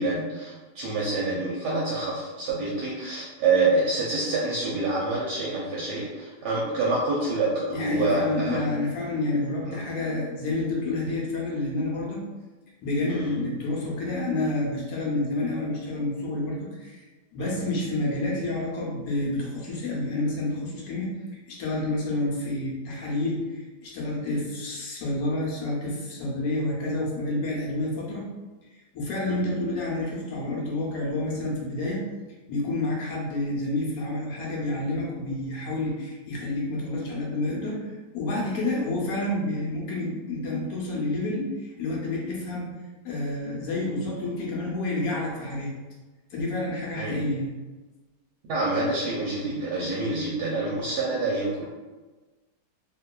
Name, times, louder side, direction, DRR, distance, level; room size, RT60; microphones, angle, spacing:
voice 1, 0.0-8.6 9.6-9.8 13.1-13.3 17.4-17.6 29.3-29.4 47.0-47.2 48.5-51.7, right 2 dB, 75° right, -6 dB, 1.1 m, -27 dB
voice 2, 7.7-12.2 12.8-17.0 17.3-21.1 21.5-23.4 23.8-28.3 28.9-32.0 32.5-37.8 38.1-42.7 43.0-45.7 46.3-47.5, left 2 dB, 70° left, -3 dB, 1.0 m, -29 dB
2.9 x 2.2 x 2.2 m, 1.2 s
omnidirectional pair, 1.9 m